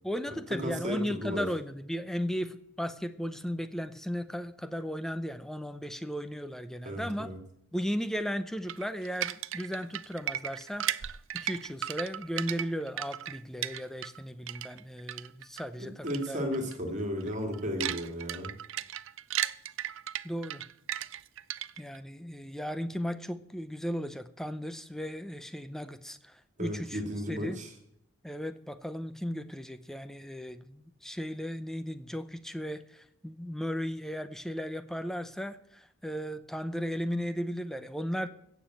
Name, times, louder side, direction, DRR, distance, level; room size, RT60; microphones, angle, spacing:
voice 1, 0.0-7.3 7.7-16.4 20.2-20.6 21.8-27.0 27.3-27.6 28.2-38.3, equal, ahead, 11 dB, 0.6 m, -36 dB
voice 2, 0.6-1.5 6.8-7.4 15.8-18.5 26.6-27.7, equal, 35° right, 3 dB, 2.6 m, -34 dB
sound 1, 8.7-14.2 14.5-15.6 16.1-16.3 16.5-16.7 17.2-22.0, right 11 dB, 65° right, 0.5 m, -35 dB
16.0 x 7.2 x 7.7 m, 0.75 s
head